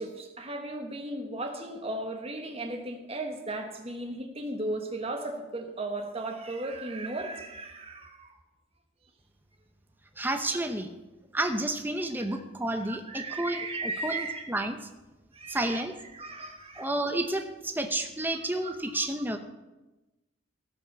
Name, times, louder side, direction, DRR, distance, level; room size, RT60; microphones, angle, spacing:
voice 1, 0.0-8.3 12.9-14.5 15.3-15.8 16.1-16.9 18.3-18.7, right 2 dB, 30° right, 4 dB, 1.6 m, -36 dB
voice 2, 10.2-10.9 11.3-14.8 15.5-15.9 16.8-19.4, right 1 dB, 10° right, 6 dB, 0.7 m, -30 dB
17.0 x 5.9 x 6.9 m, 1.1 s
head